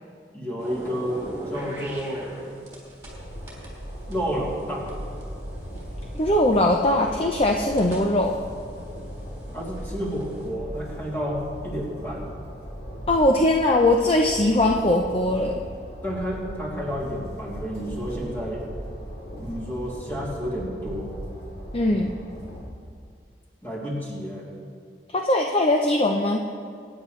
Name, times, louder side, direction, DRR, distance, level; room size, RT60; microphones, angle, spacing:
voice 1, 0.3-2.3 4.1-4.9 9.5-12.3 16.0-18.6 19.4-21.2 23.6-24.4, equal, 10° left, -5 dB, 2.9 m, -30 dB
sound 1, 0.6-3.1 3.5-6.4 7.0-10.5, right 1 dB, 15° right, 3.6 m, -42 dB
Train, 3.0-22.6, equal, 60° left, 3.3 m, -38 dB
voice 2, 6.2-8.4 13.1-15.6 21.7-22.2 25.1-26.5, left 1 dB, 30° left, 2 dB, 0.6 m, -21 dB
24.0 x 9.8 x 3.2 m, 2.2 s
head